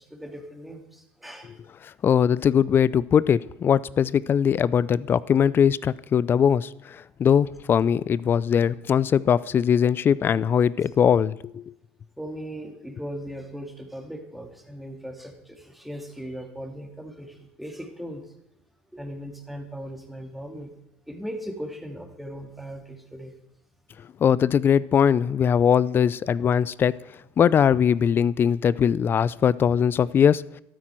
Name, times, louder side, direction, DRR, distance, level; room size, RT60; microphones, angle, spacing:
voice 1, 0.0-1.6 12.2-18.2 18.9-20.7 21.1-23.3, equal, ahead, 4 dB, 2.4 m, -38 dB
voice 2, 2.0-11.6 24.2-27.0 27.4-30.4, left 8 dB, 35° left, 20 dB, 0.5 m, -21 dB
13.0 x 12.5 x 4.5 m, 0.83 s
supercardioid pair, 100°, 6 cm